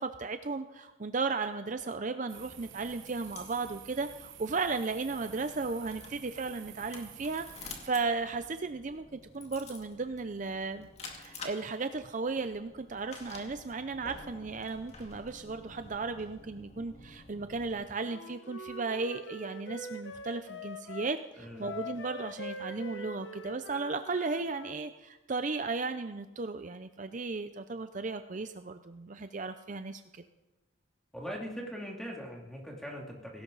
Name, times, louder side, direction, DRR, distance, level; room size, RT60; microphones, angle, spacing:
voice 1, 0.0-30.2, right 4 dB, 40° right, 9 dB, 0.5 m, -35 dB
sound 1, 2.3-7.7, right 10 dB, 70° right, 1.1 m, -51 dB
sound 2, 2.4-17.8, left 3 dB, 35° left, 2.1 m, -51 dB
Wind instrument woodwind instrument, 18.0-21.1 21.6-24.8, left 2 dB, 60° left, 1.1 m, -44 dB
voice 2, 21.4-21.7 31.1-33.4, equal, ahead, -1 dB, 2.7 m, -41 dB
18.0 x 16.5 x 4.0 m, 1.1 s
head